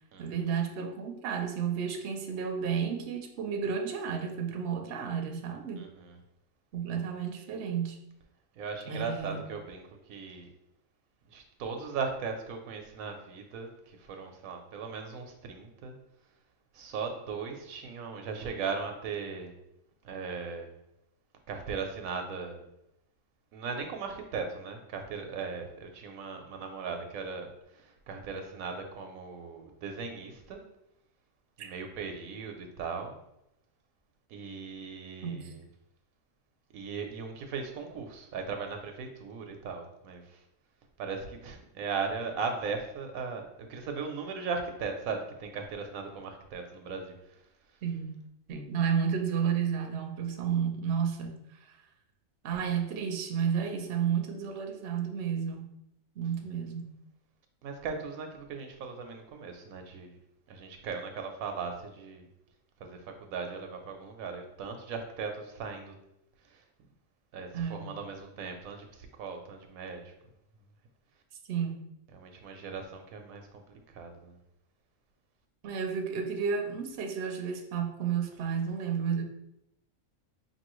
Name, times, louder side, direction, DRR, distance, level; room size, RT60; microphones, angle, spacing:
voice 1, 0.2-5.9 6.7-8.0 8.9-9.4 31.6-31.7 35.2-35.5 47.8-48.1 48.5-51.4 52.4-55.6 56.2-56.9 67.5-68.0 71.5-71.8 75.6-79.2, right 7 dB, 60° right, 3 dB, 0.8 m, -32 dB
voice 2, 5.8-6.2 8.6-10.5 11.3-15.9 16.7-19.5 20.0-20.7 21.5-22.7 23.5-27.5 27.7-30.6 31.6-33.2 34.3-35.6 36.7-40.4 41.0-47.1 56.2-56.3 57.6-60.2 60.5-62.3 62.8-66.0 66.5-66.6 67.3-70.1 72.1-74.4, right 5 dB, 85° right, 5 dB, 1.1 m, -38 dB
5.3 x 2.7 x 3.0 m, 0.81 s
omnidirectional pair, 1.4 m